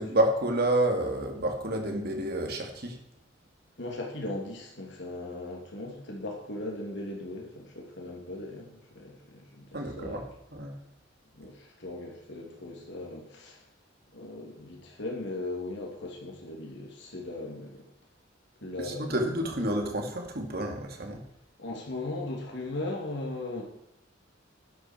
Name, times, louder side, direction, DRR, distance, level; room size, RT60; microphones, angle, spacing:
voice 1, 0.0-3.0 9.7-10.7 18.8-21.2, right 1 dB, 55° right, 3 dB, 2.4 m, -29 dB
voice 2, 3.8-10.2 11.3-13.6 14.1-17.7 18.6-19.1 21.6-23.6, left 2 dB, 65° left, 0 dB, 3.0 m, -38 dB
12.0 x 10.5 x 4.6 m, 0.79 s
head